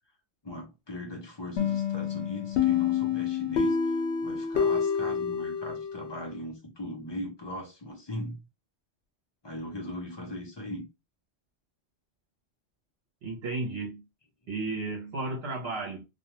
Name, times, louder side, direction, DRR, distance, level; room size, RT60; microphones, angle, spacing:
voice 1, 0.4-8.5 9.4-10.9, left 1 dB, 30° left, 0.5 m, -39 dB
sound 1, 1.6-6.3, left 7 dB, 80° left, 0.9 m, -28 dB
voice 2, 13.2-14.1 14.5-16.0, right 3 dB, 65° right, 1.0 m, -33 dB
2.4 x 2.2 x 2.9 m
omnidirectional pair, 1.1 m